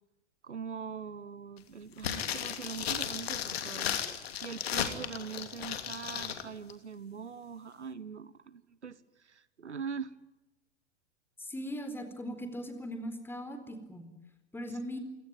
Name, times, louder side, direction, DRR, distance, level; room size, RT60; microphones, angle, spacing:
voice 1, 0.4-10.1, right 6 dB, 85° right, 18 dB, 1.2 m, -42 dB
sound 1, 2.0-6.4 6.7-6.8, left 9 dB, 65° left, 3.0 m, -35 dB
voice 2, 11.4-14.1 14.5-15.0, equal, 5° left, 8 dB, 4.1 m, -39 dB
27.0 x 18.0 x 9.6 m, 1.0 s
figure-of-eight pair, 100°, 34 cm